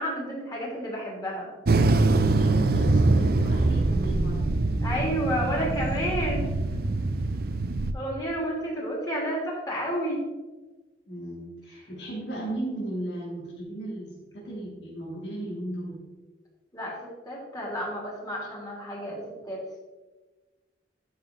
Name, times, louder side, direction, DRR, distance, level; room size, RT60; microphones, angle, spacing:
voice 1, 0.0-1.5 4.8-6.5 7.9-10.2 16.7-17.0 17.2-19.2 19.4-19.8, equal, 20° left, -3 dB, 3.0 m, -30 dB
sound 1, 1.7-7.9, right 2 dB, 60° right, 0.6 m, -23 dB
voice 2, 2.2-4.6 6.4-7.0 11.1-16.0, right 1 dB, 80° left, -5 dB, 3.0 m, -36 dB
12.0 x 6.4 x 3.8 m, 1.2 s
head